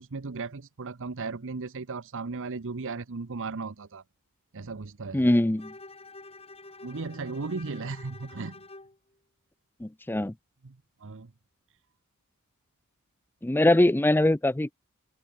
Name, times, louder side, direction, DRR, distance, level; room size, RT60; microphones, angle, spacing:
voice 1, 0.0-4.0 4.5-5.3 6.8-8.6 10.6-10.8 11.0-11.3, right 4 dB, 60° right, 0.8 m, -36 dB
voice 2, 5.1-5.7 9.8-10.3 13.4-14.7, left 1 dB, 10° left, 0.5 m, -22 dB
Bowed string instrument, 5.6-9.0, left 3 dB, 30° left, 7.7 m, -48 dB
open air
head